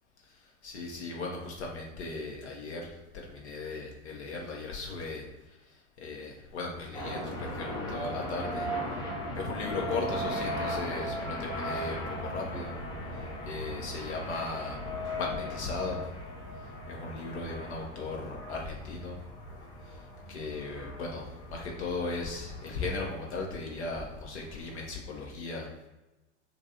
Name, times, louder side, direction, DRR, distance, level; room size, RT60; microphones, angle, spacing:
voice 1, 0.2-9.0 9.3-12.8 13.1-14.8 15.0-16.1 16.6-19.2 19.8-25.7, left 3 dB, 65° left, -1 dB, 0.8 m, -37 dB
sound 1, 6.9-25.0, equal, 15° left, 0.3 m, -38 dB
3.0 x 2.6 x 2.7 m, 1.0 s
figure-of-eight pair, 100°, 37 cm